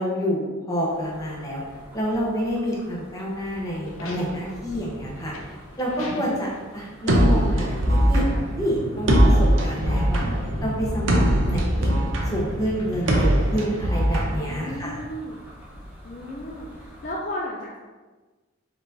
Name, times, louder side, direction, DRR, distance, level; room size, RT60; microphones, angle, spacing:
voice 1, 0.0-1.6 1.9-5.3 5.8-8.2 8.6-10.2 10.6-11.2 11.4-11.9 12.3-15.0, equal, 15° left, -5 dB, 0.9 m, -28 dB
sound 1, 0.9-17.1, equal, 5° right, 0.7 m, -37 dB
sound 2, 3.5-8.3 8.6-8.7 9.7-10.5 11.2-11.3 12.7-14.2, left 2 dB, 90° left, 0.7 m, -40 dB
sound 3, 7.1-15.0, right 1 dB, 70° right, 0.7 m, -21 dB
voice 2, 10.9-11.4 14.5-15.4 16.0-17.8, left 1 dB, 40° left, -3 dB, 0.4 m, -34 dB
4.7 x 3.8 x 2.7 m, 1.3 s
head